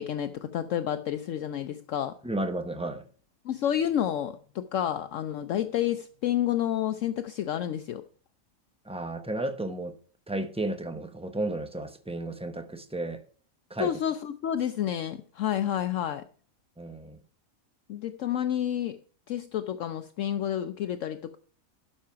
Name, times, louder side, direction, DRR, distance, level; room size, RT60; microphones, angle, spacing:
voice 1, 0.0-2.2 3.4-8.0 13.8-16.2 17.9-19.0 19.3-21.4, left 10 dB, 70° left, 0.9 m, -30 dB
voice 2, 2.2-3.0 8.8-9.9 10.3-13.2 13.7-13.9 16.8-17.2, right 2 dB, 5° right, 0.7 m, -33 dB
12.5 x 5.6 x 5.7 m
omnidirectional pair, 1.5 m